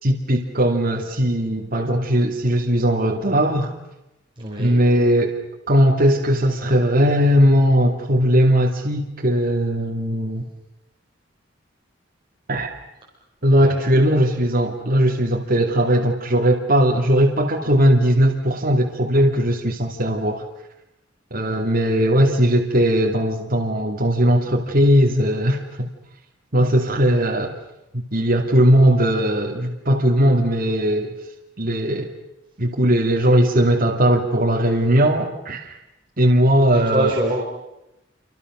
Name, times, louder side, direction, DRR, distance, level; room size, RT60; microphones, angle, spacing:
voice 1, 0.0-3.7 4.6-5.3 5.7-10.4 12.5-12.7 13.4-20.5 21.3-25.9 26.5-27.6 27.9-31.1 31.6-32.1 32.6-35.8 36.2-37.1, equal, 50° right, 0 dB, 2.6 m, -18 dB
voice 2, 4.4-4.8 13.6-13.8 36.7-37.4, right 1 dB, 25° right, -3 dB, 5.1 m, -24 dB
28.5 x 26.0 x 6.4 m, 0.91 s
head